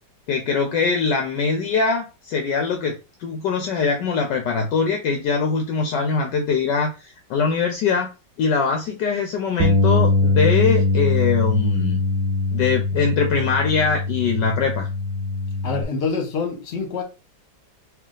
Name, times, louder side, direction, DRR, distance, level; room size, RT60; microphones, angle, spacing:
voice 1, 0.3-8.1 8.4-12.0 12.5-14.9, left 5 dB, 70° left, 1.1 m, -22 dB
Bass guitar, 9.6-15.8, left 2 dB, 70° right, 1.2 m, -21 dB
voice 2, 15.6-17.0, left 4 dB, 40° left, 1.1 m, -26 dB
3.4 x 2.8 x 3.8 m
omnidirectional pair, 2.1 m